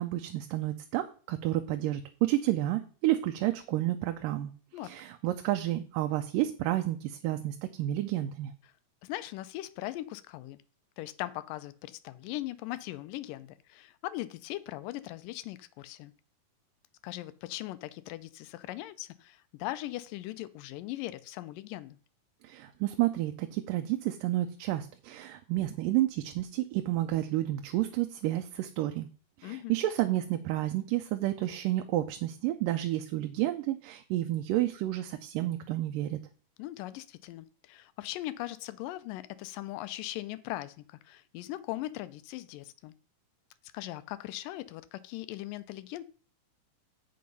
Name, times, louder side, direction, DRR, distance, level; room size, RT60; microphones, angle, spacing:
voice 1, 0.0-4.5 4.8-8.5 22.4-29.1 29.4-36.2, right 15 dB, 85° right, 2.3 m, -30 dB
voice 2, 9.0-10.6 11.0-16.1 17.0-22.0 29.4-29.8 36.6-42.9 43.7-46.0, left 16 dB, 90° left, 2.3 m, -39 dB
7.8 x 6.5 x 5.3 m
omnidirectional pair, 3.8 m